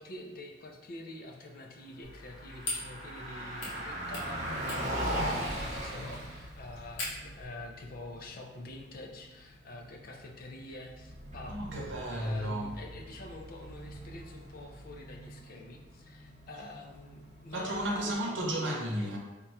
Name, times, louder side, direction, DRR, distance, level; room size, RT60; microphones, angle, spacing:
voice 1, 0.0-18.2, left 2 dB, 50° left, 0.5 m, -46 dB
sound 1, 2.0-7.4, left 2 dB, 70° left, 1.1 m, -43 dB
Car passing by, 2.1-18.2, equal, 40° right, 0.8 m, -40 dB
voice 2, 11.5-12.8 17.5-19.2, right 1 dB, 85° right, 0.8 m, -33 dB
3.5 x 2.3 x 4.2 m
head